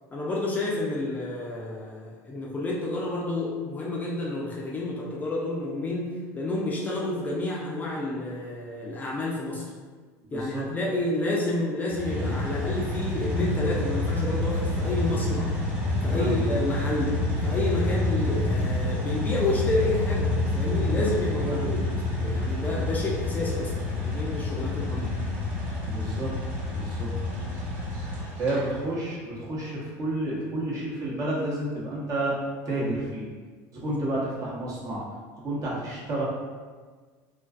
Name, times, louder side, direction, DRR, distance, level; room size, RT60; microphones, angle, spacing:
voice 1, 0.1-9.7 10.3-15.5 16.0-17.2 17.4-21.8 22.2-25.2 33.8-33.9, left 2 dB, 20° left, -4 dB, 0.4 m, -30 dB
voice 2, 10.3-10.7 16.1-16.4 21.4-21.7 25.9-26.4 26.7-27.1 28.4-32.4 32.7-33.3 33.7-35.0 35.4-36.2, right 1 dB, 40° right, -5 dB, 0.8 m, -30 dB
sound 1, 11.9-28.6, left 2 dB, 15° right, 1.0 m, -28 dB
2.4 x 2.3 x 2.3 m, 1.5 s
supercardioid pair, 105°, 8 cm